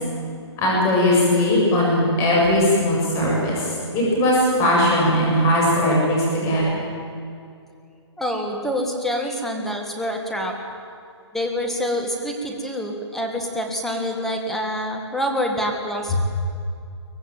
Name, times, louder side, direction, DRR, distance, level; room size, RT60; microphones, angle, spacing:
voice 1, 0.6-3.7 3.9-6.6, left 1 dB, 20° left, -3 dB, 7.5 m, -19 dB
voice 2, 8.2-10.6 11.3-16.1, equal, ahead, 2 dB, 1.9 m, -26 dB
23.0 x 18.5 x 9.1 m, 2.4 s
hypercardioid pair, 160°, 15 cm